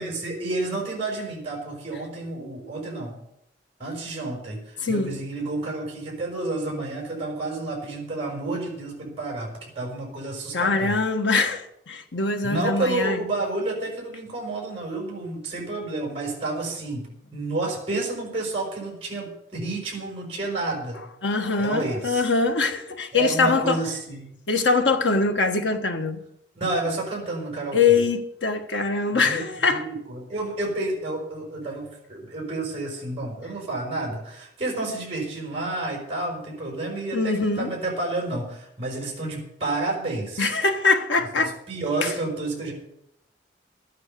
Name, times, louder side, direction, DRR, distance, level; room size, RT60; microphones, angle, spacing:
voice 1, 0.0-3.2 3.8-10.9 12.4-21.0 21.6-22.2 23.1-24.4 26.5-28.0 29.1-40.6 41.3-42.7, right 2 dB, 30° right, 4.9 m, -30 dB
voice 2, 4.8-5.2 10.5-13.2 21.2-23.8 24.5-26.2 27.7-29.9 37.1-37.7 40.4-41.6 42.0-42.1, left 4 dB, 80° left, 1.4 m, -23 dB
13.0 x 9.7 x 6.7 m
head